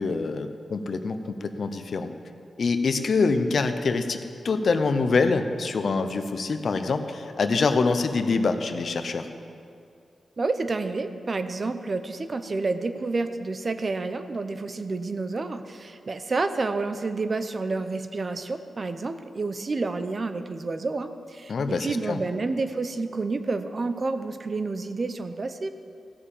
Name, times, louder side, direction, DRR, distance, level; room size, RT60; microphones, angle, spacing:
voice 1, 0.0-2.1 2.6-9.3 21.5-22.2, left 4 dB, 65° left, 8 dB, 0.8 m, -25 dB
voice 2, 10.4-25.7, right 3 dB, 45° right, 9 dB, 0.8 m, -29 dB
15.0 x 6.8 x 7.3 m, 2.4 s
cardioid pair, 60°, 0 cm